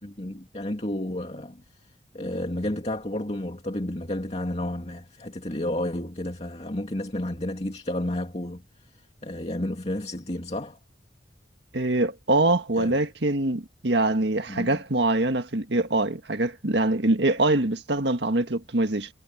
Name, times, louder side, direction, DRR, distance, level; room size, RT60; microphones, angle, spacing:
voice 1, 0.0-1.9 2.1-8.6 8.9-10.8 12.8-13.0 14.5-14.8, left 1 dB, 35° left, 2.5 m, -31 dB
voice 2, 11.7-19.1, right 2 dB, 70° right, 1.8 m, -24 dB
head